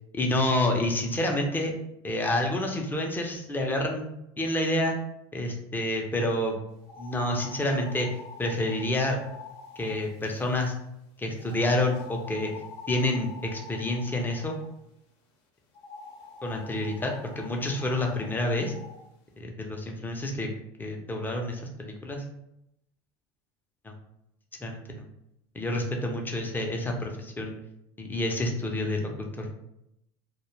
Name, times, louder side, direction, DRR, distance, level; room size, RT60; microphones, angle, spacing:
voice 1, 0.1-1.7 2.0-4.1 4.4-4.9 5.3-6.6 7.0-8.1 8.4-9.2 9.8-10.7 11.2-12.5 12.9-14.5 16.4-18.7 19.4-20.5 20.8-22.2 23.8-23.9 24.6-25.0 25.5-27.5 28.0-29.5, left 1 dB, 15° left, 1 dB, 0.5 m, -28 dB
sound 1, 6.8-10.7 11.4-14.7 15.7-19.0, left 4 dB, 70° left, 0.6 m, -46 dB
2.1 x 2.1 x 3.1 m, 0.82 s
supercardioid pair, 95°, 15 cm